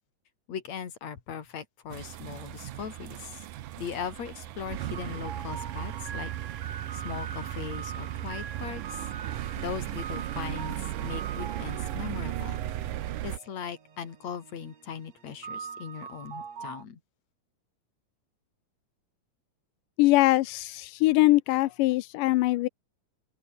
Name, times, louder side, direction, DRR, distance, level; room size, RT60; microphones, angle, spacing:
voice 1, 0.5-3.5 3.8-6.3 6.9-9.1 9.6-12.6 13.2-17.0, left 7 dB, 55° left, 3.9 m, -39 dB
sound 1, 1.9-13.4, right 13 dB, 80° right, 2.8 m, -36 dB
sound 2, 4.8-16.8, right 6 dB, 55° right, 4.1 m, -43 dB
voice 2, 20.0-22.7, left 18 dB, 90° left, 2.3 m, -22 dB
open air
omnidirectional pair, 3.7 m